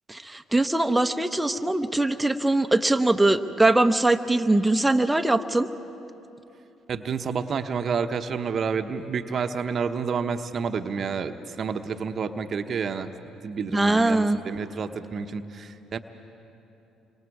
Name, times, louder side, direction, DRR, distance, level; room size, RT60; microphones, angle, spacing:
voice 1, 0.1-5.7 13.7-14.4, right 2 dB, 10° right, 7 dB, 0.9 m, -22 dB
voice 2, 6.9-13.1 13.4-16.0, right 6 dB, 50° right, 9 dB, 0.9 m, -29 dB
28.5 x 24.5 x 4.8 m, 2.9 s
hypercardioid pair, 55°, 0 cm